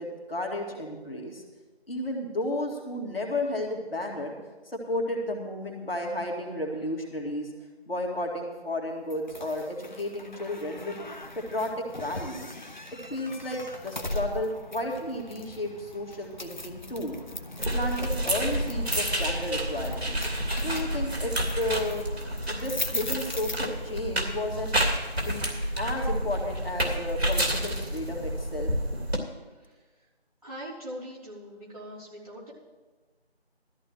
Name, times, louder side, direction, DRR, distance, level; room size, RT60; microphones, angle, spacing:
voice 1, 0.0-1.4 1.9-4.4 4.6-7.5 7.9-11.0 11.4-12.5 12.9-17.2 17.7-20.2 20.6-22.0 22.5-24.7 25.2-25.4 25.8-28.7, left 1 dB, 60° left, 0 dB, 2.3 m, -33 dB
sound 1, 9.1-24.1, left 1 dB, 45° left, 0.8 m, -39 dB
sound 2, 17.6-29.2, equal, 75° right, 2.7 m, -29 dB
voice 2, 29.5-30.1 30.4-32.5, equal, 35° right, -8 dB, 3.3 m, -42 dB
17.0 x 13.5 x 3.1 m, 1.3 s
figure-of-eight pair, 175°, 33 cm